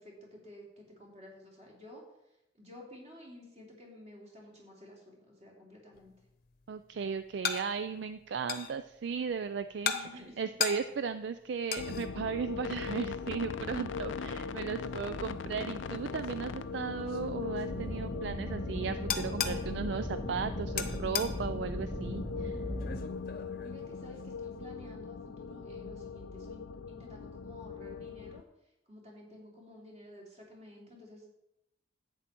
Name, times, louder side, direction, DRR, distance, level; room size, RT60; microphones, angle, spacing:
voice 1, 0.0-2.0 2.5-6.1 9.8-10.4 23.6-28.4 28.9-31.3, left 1 dB, 35° right, -3 dB, 3.3 m, -52 dB
sound 1, 5.9-24.5, left 7 dB, 50° left, 0.9 m, -41 dB
voice 2, 6.7-10.1 10.4-22.6, right 6 dB, 60° right, 11 dB, 0.4 m, -36 dB
sound 2, 11.8-28.4, left 5 dB, 75° left, 0.4 m, -40 dB
sound 3, 17.7-23.0, equal, 5° left, 0.7 m, -38 dB
11.0 x 8.6 x 4.5 m, 0.87 s
head